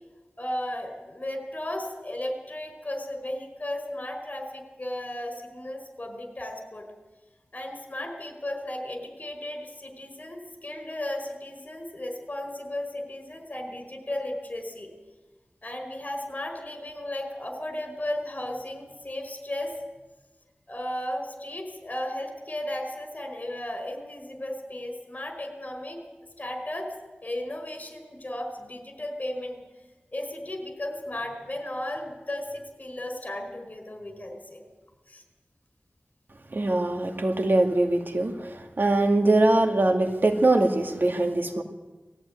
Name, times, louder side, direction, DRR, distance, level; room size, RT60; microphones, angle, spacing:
voice 1, 0.4-6.9 7.5-14.9 15.6-19.7 20.7-26.0 26.4-26.9 27.2-29.6 30.1-34.6 35.1-35.2, left 1 dB, 45° left, 5 dB, 4.7 m, -35 dB
voice 2, 36.5-41.6, right 2 dB, 60° right, 4 dB, 2.1 m, -22 dB
19.5 x 14.0 x 9.5 m, 1.2 s
wide cardioid pair, 55°, 4 cm